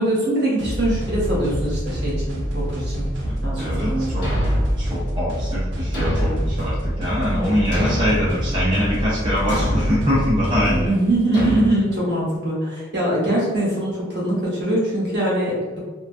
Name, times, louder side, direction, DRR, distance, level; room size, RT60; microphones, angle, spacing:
voice 1, 0.0-3.0 3.4-4.3 7.3-7.5 7.7-7.8 10.8-15.8, right 1 dB, 60° right, -7 dB, 0.9 m, -23 dB
sound 1, 0.6-10.9, equal, 75° right, 0.5 m, -26 dB
voice 2, 3.2-4.3 4.8-10.9, equal, 25° right, -9 dB, 0.5 m, -23 dB
Thump thud, 4.2-4.8 5.9-6.5 7.7-8.3 9.5-9.9 11.3-11.7, equal, 65° left, 0.9 m, -24 dB
2.3 x 2.2 x 2.5 m, 1.3 s
head